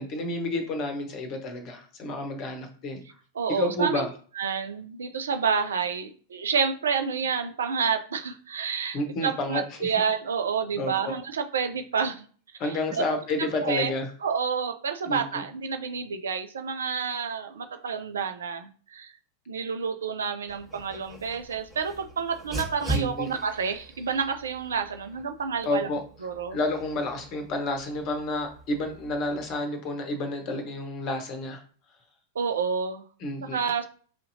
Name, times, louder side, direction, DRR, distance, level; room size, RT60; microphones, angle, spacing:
voice 1, 0.0-3.0 3.5-4.1 8.9-9.6 10.7-11.1 12.6-14.1 15.1-15.4 22.9-23.3 25.6-26.0 26.5-31.6 33.2-33.6, left 2 dB, 35° left, 6 dB, 0.9 m, -30 dB
voice 2, 3.3-4.0 4.4-12.3 12.6-13.1 13.4-13.9 14.2-19.1 19.5-25.9 26.2-26.6 32.4-33.0 33.4-33.9, right 6 dB, 65° right, 7 dB, 0.4 m, -29 dB
Dog, 20.5-29.6, right 2 dB, 10° right, 1.2 m, -40 dB
4.9 x 2.7 x 2.6 m, 0.44 s
figure-of-eight pair, 90°, 0 cm